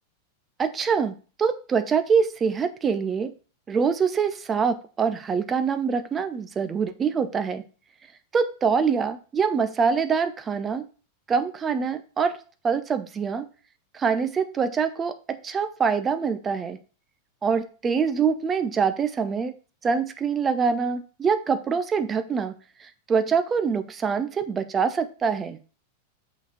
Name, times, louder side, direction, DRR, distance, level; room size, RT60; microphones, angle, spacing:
voice 1, 0.6-3.3 3.7-7.6 8.3-10.8 11.3-12.4 12.6-13.5 13.9-16.8 17.4-19.5 19.8-22.5 22.8-25.6, right 6 dB, 20° right, 11 dB, 0.7 m, -24 dB
5.8 x 4.1 x 5.7 m, 0.37 s
figure-of-eight pair, 90°, 0 cm